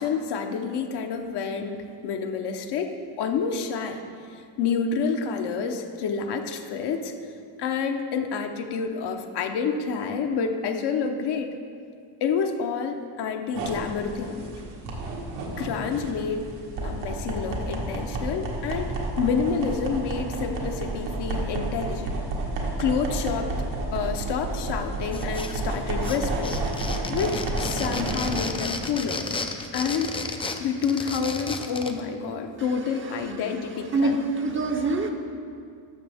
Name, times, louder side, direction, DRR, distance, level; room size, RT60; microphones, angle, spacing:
voice 1, 0.0-4.0 4.3-7.1 7.6-11.5 12.2-14.6 15.5-16.5 16.8-22.1 22.8-23.5 23.9-29.2 29.7-30.1 30.6-34.2, left 6 dB, 60° left, 5 dB, 0.9 m, -28 dB
sound 1, 13.5-28.4, right 2 dB, 85° right, 1.7 m, -31 dB
sound 2, 25.1-25.8 26.0-32.0, left 3 dB, 15° left, 0.4 m, -33 dB
voice 2, 32.6-33.5 33.9-35.1, right 2 dB, 25° right, 5 dB, 0.7 m, -27 dB
12.5 x 6.5 x 3.5 m, 2.3 s
cardioid pair, 110°, 46 cm